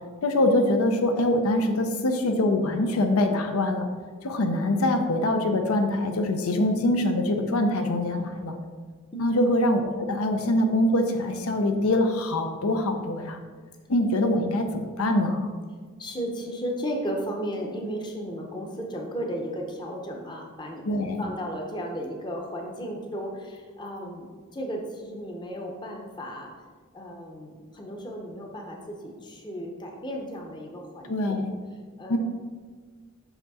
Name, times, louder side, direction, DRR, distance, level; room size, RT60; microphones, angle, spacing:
voice 1, 0.2-3.9 4.2-8.6 9.2-13.4 13.9-15.5 20.9-21.2 31.1-31.5 32.1-32.2, left 1 dB, 80° left, 5 dB, 0.6 m, -24 dB
voice 2, 16.0-26.5 26.9-31.5 32.0-32.2, equal, 20° left, 1 dB, 0.8 m, -34 dB
5.9 x 5.7 x 4.1 m, 1.5 s
head